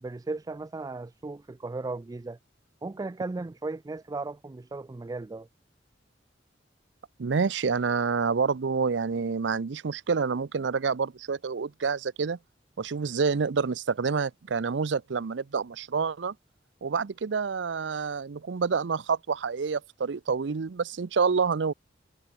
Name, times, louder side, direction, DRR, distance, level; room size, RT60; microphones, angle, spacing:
voice 1, 0.0-2.4 2.8-5.5, right 3 dB, 20° right, 0.3 m, -36 dB
voice 2, 7.2-12.4 12.8-16.3 16.8-21.7, right 5 dB, 75° right, 0.5 m, -28 dB
head